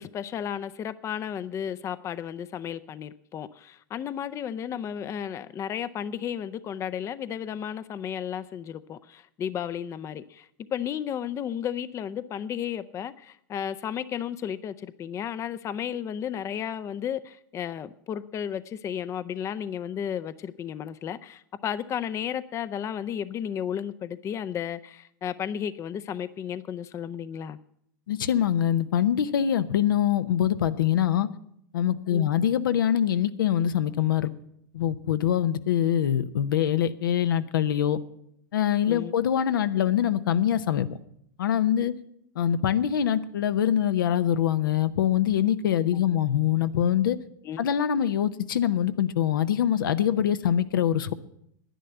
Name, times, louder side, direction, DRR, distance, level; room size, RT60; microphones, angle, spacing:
voice 1, 0.0-27.6 32.1-32.3 38.9-39.1 45.9-46.3 47.4-47.7, left 9 dB, 25° left, 0.5 m, -33 dB
voice 2, 28.1-31.3 31.7-34.3 34.7-38.0 38.5-41.0 41.4-41.9 42.4-47.2 47.6-51.1, left 10 dB, 80° left, 0.7 m, -24 dB
10.0 x 10.0 x 7.9 m
hypercardioid pair, 115°, 11 cm